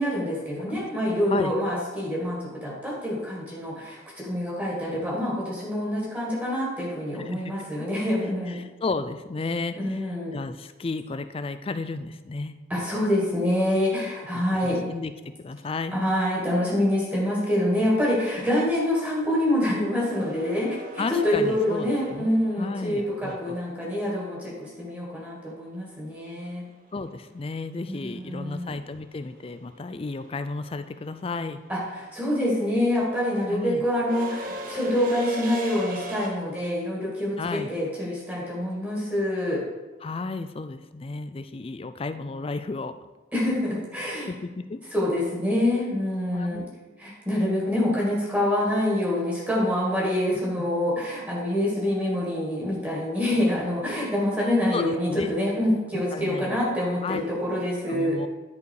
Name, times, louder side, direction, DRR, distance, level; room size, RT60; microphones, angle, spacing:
voice 1, 0.0-8.6 9.7-10.3 12.7-14.8 15.9-26.6 27.9-28.7 31.7-39.6 43.3-44.3 44.9-46.6 47.0-58.2, left 1 dB, 10° right, -5 dB, 2.3 m, -26 dB
voice 2, 7.2-7.9 8.5-12.5 14.3-16.0 21.0-22.3 22.6-23.6 26.9-31.6 33.5-33.8 37.4-37.7 40.0-43.0 44.3-44.8 46.3-46.7 50.6-50.7 54.7-55.3 55.9-56.6 57.0-57.2 57.9-58.3, left 3 dB, 30° left, 11 dB, 0.4 m, -33 dB
sound 1, 20.1-24.1 26.5-26.6 27.9-28.2 28.5-36.3, equal, 45° right, 1.1 m, -39 dB
10.5 x 5.1 x 4.8 m, 1.2 s
head